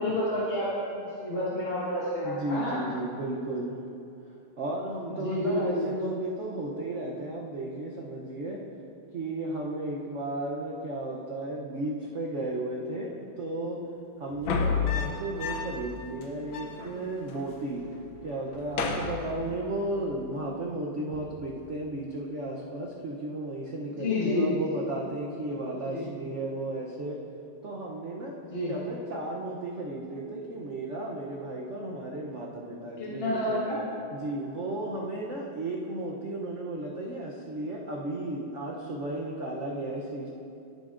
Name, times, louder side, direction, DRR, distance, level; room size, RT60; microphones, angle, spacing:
voice 1, 0.0-2.8 5.1-5.8 23.9-24.5 25.8-26.1 28.5-28.7 33.0-33.8, left 1 dB, 30° left, -8 dB, 1.3 m, -29 dB
voice 2, 2.2-3.8 4.6-8.6 9.1-13.8 14.2-17.8 18.2-27.2 27.6-28.4 28.7-33.6 34.1-40.3, right 2 dB, 75° right, -2 dB, 0.6 m, -34 dB
sound 1, 14.3-15.9 16.2-16.3 16.5-17.5 17.8-18.1 18.5-19.9 21.1-21.5, left 5 dB, 70° left, 1.5 m, -32 dB
15.0 x 7.9 x 2.5 m, 2.7 s
omnidirectional pair, 2.3 m